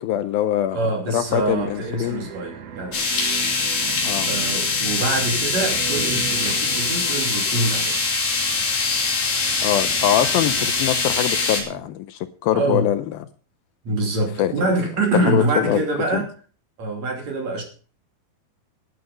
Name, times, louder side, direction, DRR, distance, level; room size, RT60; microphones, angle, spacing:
voice 1, 0.0-2.3 4.0-4.3 9.6-13.0 14.4-14.5 15.2-15.8 16.1-16.2, left 12 dB, 75° left, 2.4 m, -23 dB
voice 2, 0.7-3.0 4.3-8.0 12.5-12.9 13.8-16.3 16.8-17.6, right 2 dB, 45° right, 3.8 m, -25 dB
sound 1, 1.1-11.9, right 7 dB, 75° right, 3.7 m, -37 dB
sound 2, 2.9-11.6, left 4 dB, 60° left, 4.4 m, -23 dB
12.0 x 11.0 x 5.3 m
omnidirectional pair, 4.5 m